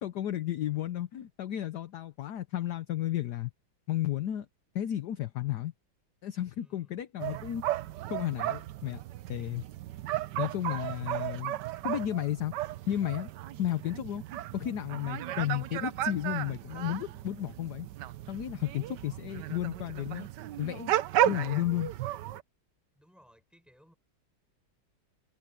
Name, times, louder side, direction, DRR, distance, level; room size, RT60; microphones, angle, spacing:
voice 1, 0.0-3.5 3.9-4.5 4.7-5.7 6.2-7.7 8.1-9.0 9.3-9.6 10.4-12.5 12.9-13.3 13.6-14.2 14.5-17.9 18.3-20.3 20.6-20.9 21.2-21.9, left 12 dB, 65° left, 1.2 m, -33 dB
voice 2, 6.5-7.0 15.2-15.5 22.9-23.9, equal, ahead, 7.6 m, -61 dB
sound 1, 7.2-22.4, right 13 dB, 70° right, 1.2 m, -34 dB
omnidirectional pair, 2.2 m